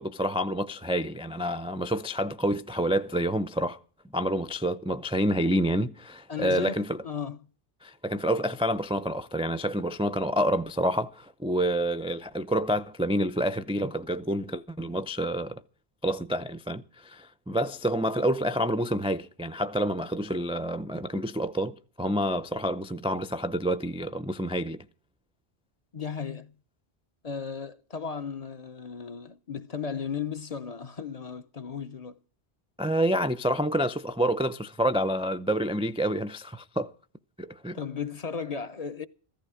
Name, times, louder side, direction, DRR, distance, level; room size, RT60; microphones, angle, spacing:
voice 1, 0.0-3.8 4.1-7.0 7.8-15.6 16.0-24.9 32.8-36.9 37.4-37.8, equal, 10° right, 0.3 m, -28 dB
voice 2, 6.3-7.4 25.9-26.5 27.2-32.2 37.7-39.1, left 6 dB, 40° left, 0.8 m, -35 dB
15.0 x 14.0 x 4.9 m
omnidirectional pair, 1.1 m